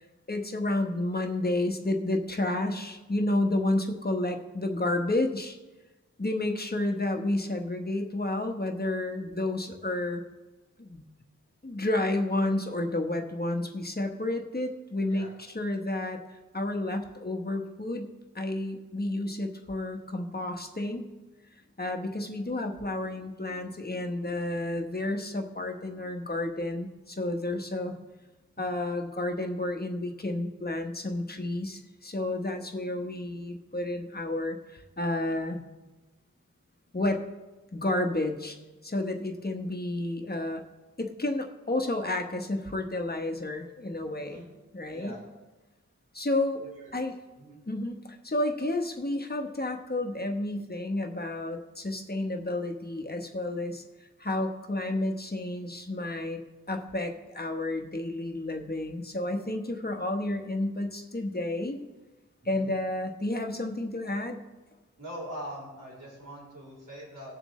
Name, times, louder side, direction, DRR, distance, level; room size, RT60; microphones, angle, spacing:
voice 1, 0.3-5.6 6.2-10.2 10.8-11.0 11.6-21.0 21.8-27.9 28.6-35.6 36.9-37.2 37.7-38.6 38.8-40.6 41.0-44.4 44.7-45.2 46.1-46.6 46.9-47.1 47.7-53.8 54.2-61.8 62.4-64.4, left 2 dB, 30° left, 4 dB, 1.1 m, -31 dB
voice 2, 44.1-44.5 44.9-45.2 46.6-46.9 47.4-47.6 62.4-62.7 65.0-67.4, equal, 70° right, -4 dB, 4.3 m, -42 dB
19.0 x 7.4 x 3.2 m, 1.2 s
wide cardioid pair, 65°, 33 cm